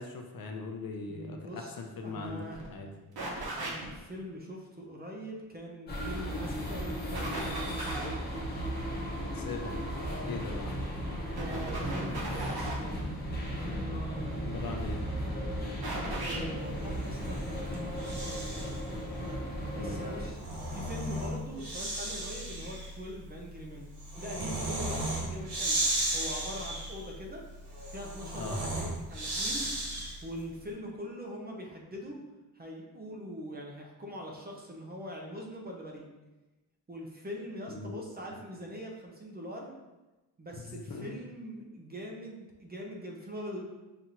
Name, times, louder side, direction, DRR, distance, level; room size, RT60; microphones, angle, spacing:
voice 1, 0.0-2.9 9.3-9.9 10.2-10.7 14.4-15.0 19.8-20.0 28.4-28.6 37.7-38.4 40.6-41.1, left 3 dB, 60° left, 4 dB, 0.6 m, -40 dB
voice 2, 1.1-1.7 2.0-2.6 3.2-8.0 10.0-10.3 11.3-13.0 13.6-14.4 16.0-18.8 19.7-20.4 20.7-23.9 24.2-25.8 26.1-27.4 27.9-29.7 30.2-32.2 32.5-36.1 36.9-39.7 40.4-43.6, equal, 25° right, -1 dB, 0.5 m, -42 dB
sound 1, 2.2-2.3 2.5-2.7 3.2-4.0 6.1-6.7 7.1-8.2 10.4-10.7 11.4-12.9 14.6-15.1 15.8-16.4, right 2 dB, 70° right, 1.0 m, -37 dB
sound 2, 5.9-20.3, equal, 25° left, 0.8 m, -36 dB
Breathing, 16.9-18.8 20.1-30.4, right 1 dB, 90° right, 1.2 m, -35 dB
5.7 x 2.5 x 2.8 m, 1.1 s
wide cardioid pair, 155°, 39 cm